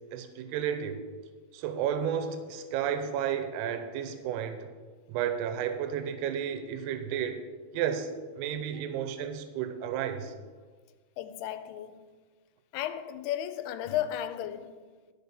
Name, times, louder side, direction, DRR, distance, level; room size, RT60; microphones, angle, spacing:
voice 1, 0.1-1.0 1.5-4.7 5.1-7.4 7.7-10.3, right 8 dB, 85° right, 2.8 m, -32 dB
voice 2, 11.2-12.0 12.7-14.9, left 11 dB, 85° left, 2.6 m, -34 dB
13.0 x 4.7 x 6.7 m
omnidirectional pair, 4.6 m